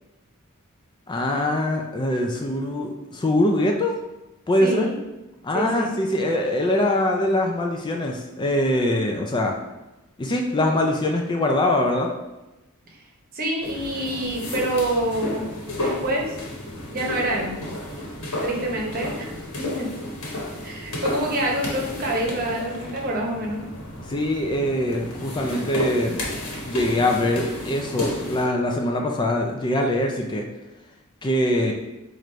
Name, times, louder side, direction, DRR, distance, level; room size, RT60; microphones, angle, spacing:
voice 1, 1.1-3.9 4.5-4.9 5.4-9.6 10.2-12.1 24.1-26.3 26.6-30.5 31.2-31.7, left 1 dB, 20° left, 1 dB, 0.4 m, -23 dB
voice 2, 4.6-4.9 5.5-5.9 12.9-13.0 13.3-15.5 15.7-16.4 16.9-17.6 18.4-19.9 20.6-23.7, right 1 dB, 45° right, -1 dB, 0.9 m, -27 dB
sound 1, 13.6-28.5, left 1 dB, 70° left, 1.3 m, -32 dB
4.8 x 2.5 x 4.3 m, 1.0 s
head